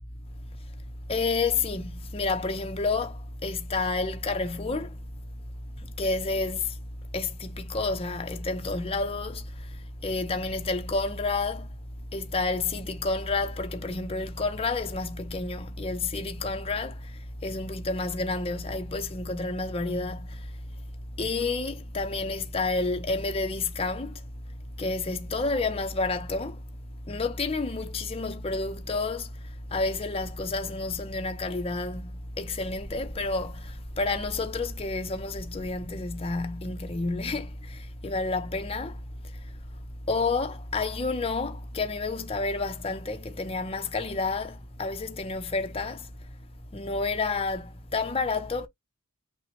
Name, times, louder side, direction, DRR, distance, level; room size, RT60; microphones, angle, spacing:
voice 1, 1.1-5.0 5.8-6.8 7.1-11.7 12.1-20.5 21.2-24.2 24.8-26.6 27.1-29.3 29.7-39.0 40.1-46.1 46.7-48.7, left 3 dB, 25° left, 0.6 m, -30 dB
5.8 x 2.2 x 3.2 m
head